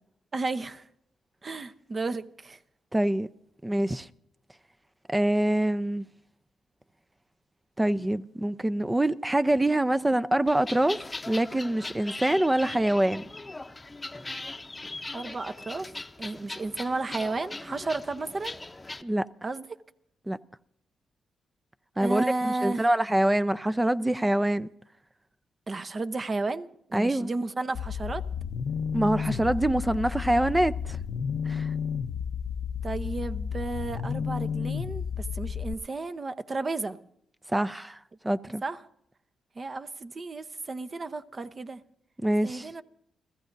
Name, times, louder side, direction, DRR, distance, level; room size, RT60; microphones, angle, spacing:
voice 1, 0.3-0.8 1.4-2.6 15.1-15.9 16.2-18.6 19.4-19.6 22.0-22.8 25.7-28.2 29.4-29.5 32.8-37.0 38.6-38.8 39.6-41.8 42.4-42.8, right 3 dB, 35° right, 0.9 m, -33 dB
voice 2, 2.9-3.3 3.6-4.1 5.1-6.1 7.8-13.2 19.0-19.3 20.3-20.4 22.0-24.7 26.9-27.3 28.9-31.0 31.5-31.7 37.5-38.0 38.2-38.6 42.2-42.7, right 1 dB, 15° right, 0.5 m, -25 dB
sound 1, 10.5-19.0, left 2 dB, 20° left, 0.8 m, -40 dB
sound 2, 27.7-35.7, left 7 dB, 75° left, 0.7 m, -32 dB
30.0 x 14.5 x 2.7 m
cardioid pair, 80°, 0 cm